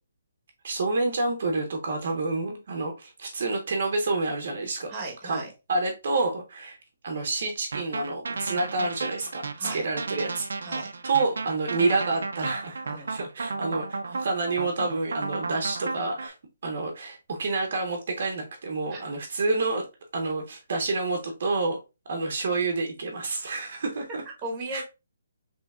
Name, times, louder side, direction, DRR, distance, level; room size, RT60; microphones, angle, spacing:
voice 1, 0.6-4.9 5.2-5.4 5.7-6.8 7.0-10.5 11.0-16.3 16.6-19.8 20.1-21.8 22.1-24.2 24.7-24.8, right 3 dB, 45° right, 0.7 m, -28 dB
voice 2, 4.9-5.5 9.6-9.8 10.6-10.9 12.8-13.1 18.9-19.0 24.4-24.8, right 2 dB, 15° right, 1.1 m, -36 dB
sound 1, 7.7-16.3, right 3 dB, 85° right, 0.5 m, -33 dB
5.3 x 3.1 x 2.4 m
hypercardioid pair, 175°, 0 cm